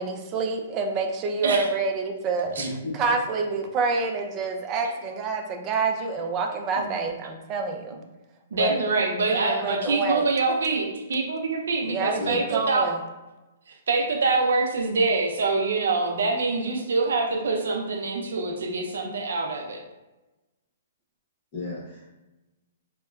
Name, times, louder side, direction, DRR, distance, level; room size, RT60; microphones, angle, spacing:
voice 1, 0.0-2.5 2.9-8.0 8.6-8.8 9.2-10.2 11.9-13.0, right 4 dB, 25° right, 4 dB, 0.3 m, -27 dB
voice 2, 2.6-3.2 12.2-12.5 21.5-22.0, left 1 dB, 35° left, -8 dB, 0.9 m, -33 dB
voice 3, 8.5-13.0 13.9-19.8, right 3 dB, 80° right, 2 dB, 0.5 m, -25 dB
3.6 x 2.2 x 2.3 m, 1.1 s
hypercardioid pair, 155°, 0 cm